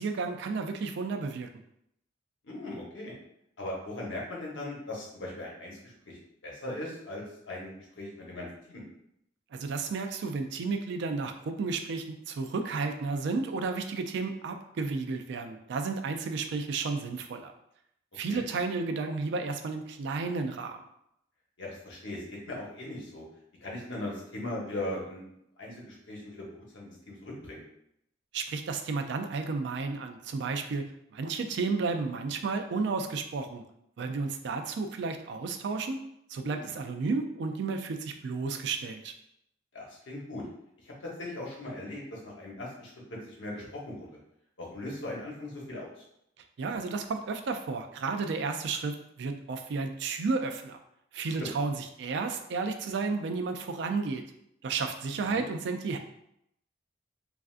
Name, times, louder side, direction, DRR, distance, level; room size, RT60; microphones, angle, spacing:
voice 1, 0.0-1.5 9.5-17.5 18.1-20.8 28.3-30.9 31.1-33.6 34.0-36.0 36.3-39.1 46.6-50.8 51.1-54.2 54.6-56.0, right 4 dB, 65° right, 6 dB, 0.3 m, -32 dB
voice 2, 2.4-3.1 3.6-8.8 18.3-18.4 21.6-23.2 23.6-27.6 36.4-36.7 39.7-40.5 40.8-40.9 41.2-42.9 43.3-44.2 44.6-46.0 51.4-51.5 55.1-55.4, left 1 dB, 85° left, -3 dB, 1.0 m, -39 dB
3.3 x 2.5 x 2.4 m, 0.76 s
head